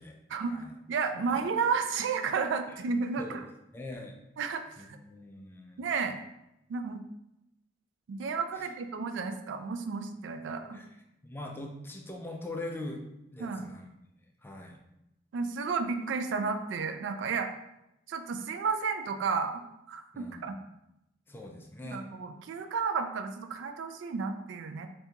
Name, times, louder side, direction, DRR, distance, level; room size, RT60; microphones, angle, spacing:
voice 1, 0.9-3.4 4.4-4.6 4.9-5.0 5.8-6.2 6.7-7.0 8.1-10.8 13.4-13.7 15.3-17.5 18.1-19.6 19.9-20.5 21.9-24.9, right 5 dB, 75° right, 7 dB, 0.3 m, -32 dB
voice 2, 3.7-4.2 4.8-5.8 8.5-8.7 10.7-11.0 11.2-13.0 13.3-13.9 14.4-14.8 20.1-20.5 21.3-22.1, left 2 dB, 10° left, 2 dB, 0.3 m, -42 dB
3.5 x 2.6 x 2.8 m, 0.86 s
head